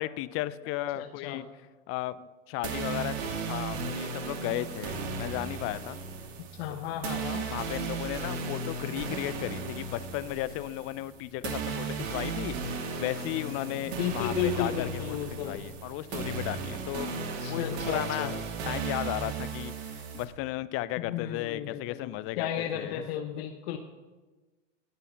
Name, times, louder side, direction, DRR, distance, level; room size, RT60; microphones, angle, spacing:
voice 1, 0.0-1.5 1.9-3.1 3.4-6.0 6.7-6.8 7.5-14.9 15.4-17.1 17.5-18.4 18.6-23.1, left 16 dB, 35° left, 16 dB, 0.6 m, -35 dB
voice 2, 1.0-1.4 6.5-7.5 13.9-15.6 17.4-18.3 21.0-22.1 22.4-23.8, left 9 dB, 55° left, 7 dB, 1.1 m, -33 dB
sound 1, 2.6-20.2, right 4 dB, 60° right, 2.6 m, -35 dB
18.5 x 7.0 x 5.8 m, 1.2 s
hypercardioid pair, 100°, 37 cm